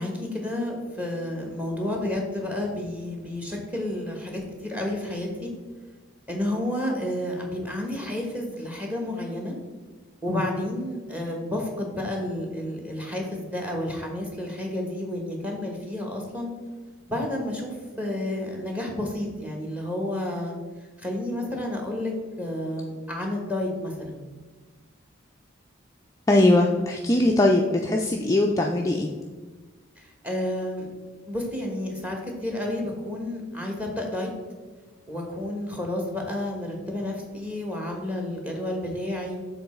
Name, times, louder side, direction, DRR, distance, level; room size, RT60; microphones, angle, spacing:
voice 1, 0.0-5.5 6.3-9.6 10.2-16.5 17.1-20.5 21.0-22.1 22.4-24.2 30.0-30.9 31.3-34.3 35.1-39.3, left 1 dB, 5° right, 1 dB, 1.0 m, -30 dB
voice 2, 26.3-29.1, left 1 dB, 15° left, 0 dB, 0.3 m, -20 dB
6.9 x 3.8 x 4.2 m, 1.3 s
head